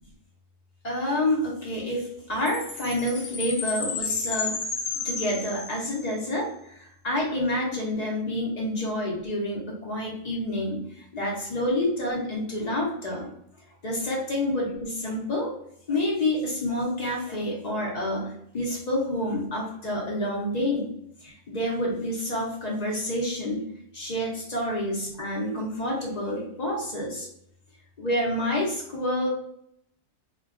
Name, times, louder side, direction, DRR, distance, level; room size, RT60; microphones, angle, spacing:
voice 1, 0.8-4.6 5.0-13.3 13.8-15.5 15.9-20.9 21.2-23.7 23.9-27.3 28.0-29.3, left 1 dB, 55° left, -2 dB, 0.4 m, -28 dB
Chime, 2.5-6.2, left 5 dB, 85° left, 1.0 m, -32 dB
2.3 x 2.1 x 3.6 m, 0.73 s
omnidirectional pair, 1.4 m